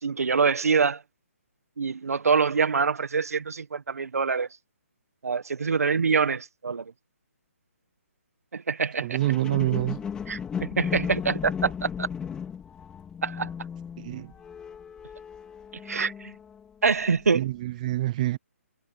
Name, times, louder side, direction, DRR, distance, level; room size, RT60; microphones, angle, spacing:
voice 1, 0.0-1.0 1.8-4.5 5.2-6.8 8.5-9.2 10.3-12.1 13.2-13.5 15.8-16.3 16.8-17.5, right 5 dB, 80° right, 1.5 m, -25 dB
voice 2, 9.0-10.0 14.0-14.3 17.3-18.4, right 15 dB, 30° right, 0.6 m, -27 dB
sound 1, 9.2-16.6 17.2-17.3, left 7 dB, 10° left, 4.0 m, -36 dB
hypercardioid pair, 155°, 8 cm